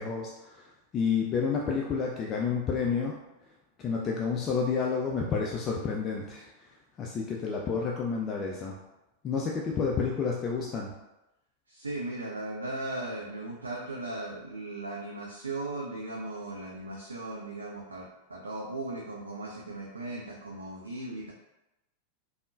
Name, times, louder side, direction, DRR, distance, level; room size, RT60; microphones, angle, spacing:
voice 1, 0.0-3.2 3.8-6.7 7.0-8.8 9.2-10.9, left 5 dB, 30° left, -1 dB, 0.3 m, -30 dB
voice 2, 11.7-21.3, right 2 dB, 75° right, -2 dB, 0.4 m, -37 dB
3.5 x 2.0 x 2.4 m, 0.94 s
figure-of-eight pair, 90°, 0 cm